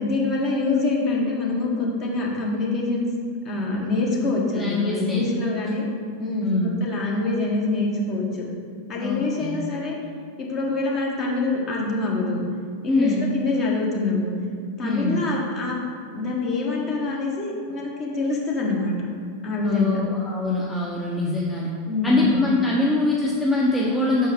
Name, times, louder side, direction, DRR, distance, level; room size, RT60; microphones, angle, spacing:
voice 1, 0.0-3.1 3.4-5.8 6.2-8.5 8.9-10.0 10.4-12.4 12.8-14.3 14.8-15.8 16.1-19.1 19.4-20.0 21.9-22.5, left 3 dB, 30° left, -2 dB, 1.4 m, -25 dB
voice 2, 4.5-5.2 6.4-6.8 9.0-9.6 12.9-13.3 14.8-15.2 19.6-21.7 22.0-24.3, left 2 dB, 10° left, -4 dB, 0.7 m, -23 dB
6.1 x 4.5 x 5.2 m, 2.2 s
figure-of-eight pair, 90°, 0 cm